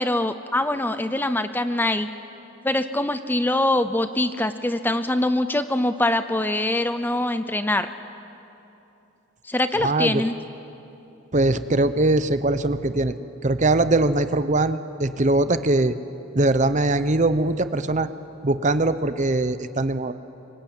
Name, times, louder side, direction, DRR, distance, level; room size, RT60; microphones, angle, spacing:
voice 1, 0.0-2.1 2.6-7.9 9.5-10.3, left 1 dB, 10° left, 10 dB, 0.6 m, -23 dB
voice 2, 9.8-10.2 11.3-13.1 13.4-15.9 16.3-18.1 18.4-20.1, right 2 dB, 35° right, 11 dB, 0.8 m, -21 dB
26.0 x 23.5 x 9.0 m, 2.9 s
head